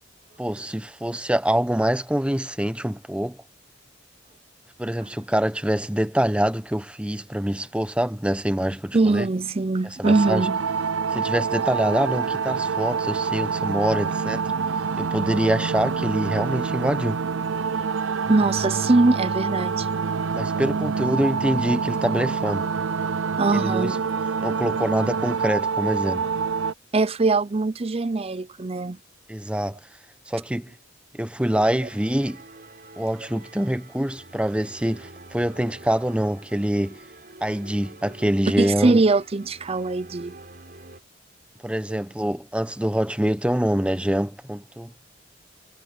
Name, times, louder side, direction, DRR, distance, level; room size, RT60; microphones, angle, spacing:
voice 1, 0.4-3.4 4.8-9.3 10.0-10.4 11.1-14.4 15.0-17.2 20.3-22.7 23.5-24.0 24.4-26.3 29.3-29.8 30.3-30.7 31.1-32.4 33.0-37.0 37.4-39.0 41.6-44.9, equal, 5° right, 1.0 m, -25 dB
voice 2, 8.9-10.6 18.3-19.9 23.4-24.0 26.9-29.0 38.6-40.4 41.9-42.0, right 3 dB, 30° right, 0.6 m, -22 dB
sound 1, 10.0-26.7, right 5 dB, 80° right, 0.6 m, -26 dB
sound 2, 31.5-41.0, right 2 dB, 50° right, 4.2 m, -46 dB
head